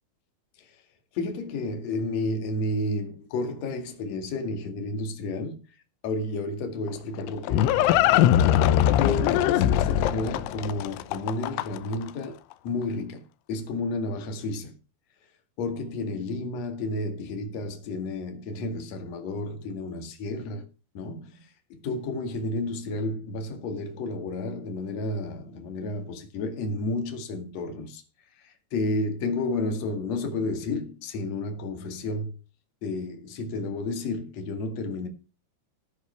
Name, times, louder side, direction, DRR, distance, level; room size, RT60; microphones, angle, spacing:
voice 1, 1.1-5.6 6.0-7.8 8.9-12.4 12.6-14.7 15.6-20.6 20.9-28.0 28.4-32.4 32.8-35.1, left 2 dB, 45° left, 2.4 m, -31 dB
Livestock farm animals working animals, 6.9-12.0, left 12 dB, 85° left, 3.1 m, -21 dB
16.0 x 5.6 x 6.8 m
omnidirectional pair, 5.5 m